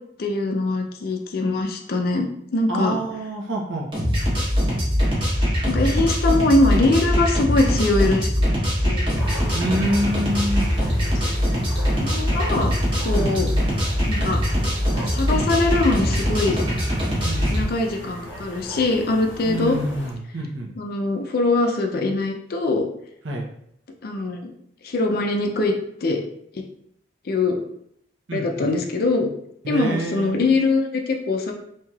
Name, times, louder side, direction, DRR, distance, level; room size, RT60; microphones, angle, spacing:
voice 1, 0.2-3.0 5.7-8.5 8.8-9.2 12.0-12.7 13.0-13.5 14.0-14.4 15.0-16.6 17.5-19.8 20.8-22.9 24.0-24.5 24.8-25.7 26.0-26.2 26.5-26.6 27.2-27.6 28.3-29.3 29.7-31.5, left 2 dB, 50° left, 3 dB, 0.4 m, -22 dB
voice 2, 2.7-3.9 9.5-10.7 13.1-13.6 17.2-17.7 19.4-20.7 23.2-23.5 28.3-28.7 29.6-30.4, right 1 dB, 75° right, 0 dB, 0.7 m, -27 dB
sound 1, 3.9-17.6, equal, 25° right, 1.0 m, -22 dB
sound 2, 9.1-20.1, equal, 80° left, 0.7 m, -37 dB
3.2 x 2.7 x 2.3 m, 0.72 s
head